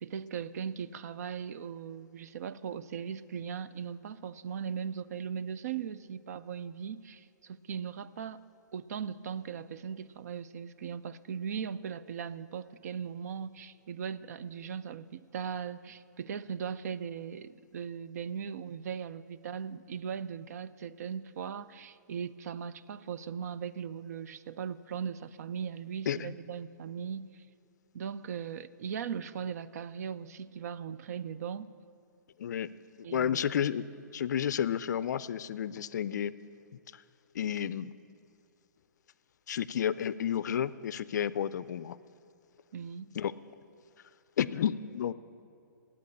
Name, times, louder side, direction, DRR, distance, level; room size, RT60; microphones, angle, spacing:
voice 1, 0.0-8.4 8.7-27.4 27.9-31.7 33.0-33.4 42.7-43.1, right 7 dB, 55° right, 15 dB, 0.4 m, -39 dB
voice 2, 32.4-32.7 33.0-33.8 34.1-36.3 37.3-37.9 39.5-42.0 43.1-43.3 44.4-45.1, left 9 dB, 60° left, 17 dB, 0.4 m, -31 dB
10.5 x 8.5 x 8.4 m, 2.5 s
hypercardioid pair, 155°, 10 cm